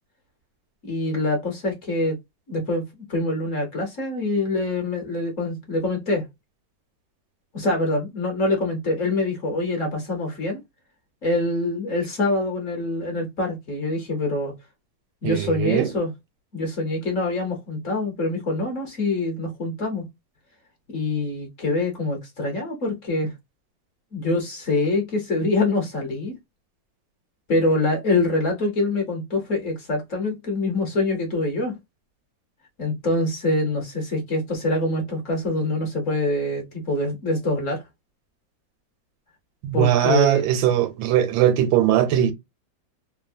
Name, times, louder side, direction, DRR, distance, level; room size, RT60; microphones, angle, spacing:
voice 1, 0.8-2.2 2.5-2.8 3.1-6.2 7.5-10.6 11.2-14.5 15.2-16.1 16.5-20.0 20.9-23.3 24.1-26.3 27.5-31.7 32.8-37.8 39.7-40.5, left 2 dB, 50° left, 1.1 m, -25 dB
voice 2, 15.2-15.9 39.6-42.3, right 11 dB, 85° right, 1.3 m, -20 dB
3.2 x 2.1 x 2.5 m
omnidirectional pair, 2.1 m